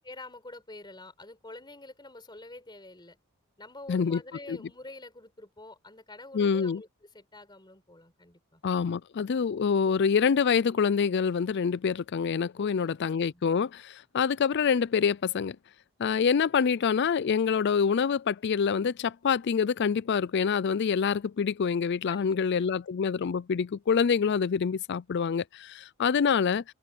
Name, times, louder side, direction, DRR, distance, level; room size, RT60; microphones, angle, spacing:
voice 1, 0.0-3.2 3.6-6.9 7.1-8.6 12.6-12.9 13.3-13.4 22.1-22.8, left 2 dB, 20° left, 4.7 m, -47 dB
voice 2, 3.9-4.2 4.5-4.6 6.3-6.8 8.6-15.6 16.0-26.6, left 6 dB, 55° left, 0.4 m, -26 dB
open air
head